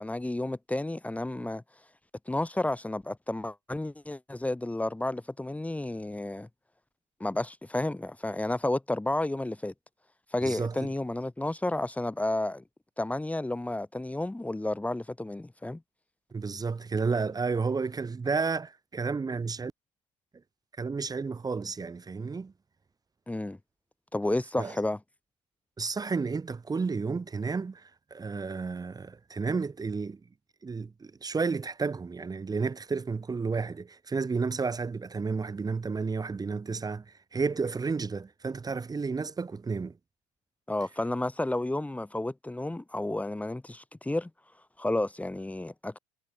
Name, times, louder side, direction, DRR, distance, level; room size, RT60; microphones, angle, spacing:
voice 1, 0.0-1.6 2.3-6.5 7.2-9.7 10.3-12.6 13.0-15.8 23.3-23.6 24.1-25.0 40.7-44.3 44.8-46.0, left 1 dB, 10° left, 2.8 m, -31 dB
voice 2, 10.4-10.9 16.3-19.7 20.8-22.5 24.6-24.8 25.8-30.2 30.6-40.0, right 4 dB, 20° right, 3.1 m, -32 dB
supercardioid pair, 95°, 18 cm